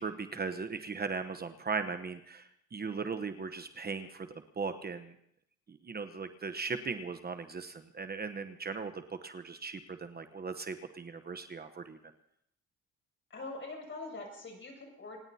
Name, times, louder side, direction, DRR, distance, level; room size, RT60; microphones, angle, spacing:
voice 1, 0.0-4.3 4.6-5.1 5.7-12.0, right 4 dB, 30° right, 8 dB, 1.0 m, -38 dB
voice 2, 13.3-15.2, left 3 dB, 40° left, 2 dB, 6.8 m, -43 dB
27.5 x 18.5 x 2.8 m, 0.71 s
cardioid pair, 90°, 30 cm